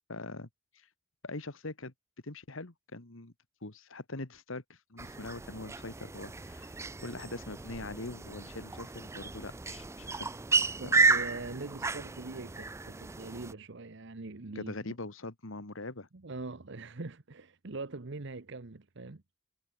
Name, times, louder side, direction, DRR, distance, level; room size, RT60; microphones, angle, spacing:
voice 1, 0.1-0.5 0.7-0.9 1.2-1.9 2.2-3.3 3.6-10.3 10.8-11.1 14.6-16.1, left 2 dB, 85° left, 2.1 m, -42 dB
sound 1, 5.0-13.5, right 3 dB, 15° right, 0.4 m, -32 dB
voice 2, 10.7-15.0 16.1-19.2, right 3 dB, 65° right, 1.0 m, -43 dB
head